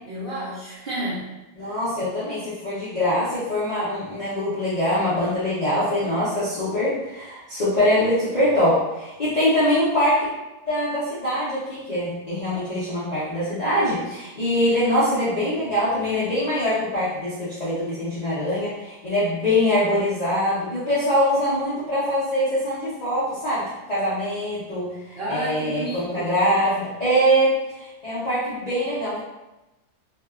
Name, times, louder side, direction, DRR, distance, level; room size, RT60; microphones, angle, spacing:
voice 1, 0.0-1.3 1.6-1.8 25.2-26.4, right 1 dB, 75° right, -8 dB, 0.5 m, -31 dB
voice 2, 1.6-10.3 10.7-24.9 25.3-29.2, equal, 55° left, -13 dB, 0.4 m, -23 dB
2.6 x 2.3 x 2.3 m, 1.0 s
omnidirectional pair, 1.7 m